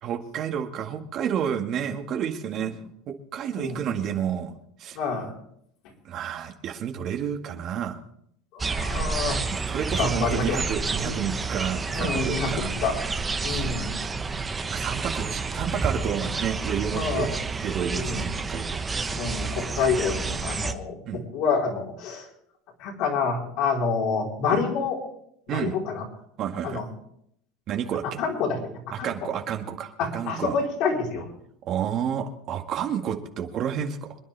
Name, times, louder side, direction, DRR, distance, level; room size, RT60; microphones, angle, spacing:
voice 1, 0.0-2.7 3.1-4.5 4.8-5.0 6.0-8.0 9.5-12.7 13.5-13.7 14.7-18.8 21.1-21.2 24.5-24.6 25.5-25.8 26.4-26.8 27.7-28.2 28.9-30.6 31.7-34.2, right 8 dB, 45° right, 4 dB, 1.9 m, -30 dB
voice 2, 4.9-5.3 8.5-9.4 10.0-10.6 11.0-11.2 11.9-12.9 13.4-14.0 16.9-17.3 17.9-18.2 19.1-22.2 22.8-25.0 25.5-26.0 26.6-26.8 28.2-28.6 29.0-29.1 30.0-31.2, left 5 dB, 60° left, -1 dB, 4.5 m, -27 dB
sound 1, 8.6-20.7, right 4 dB, 15° right, 1.1 m, -29 dB
26.5 x 10.0 x 3.5 m, 0.71 s
supercardioid pair, 125°, 0 cm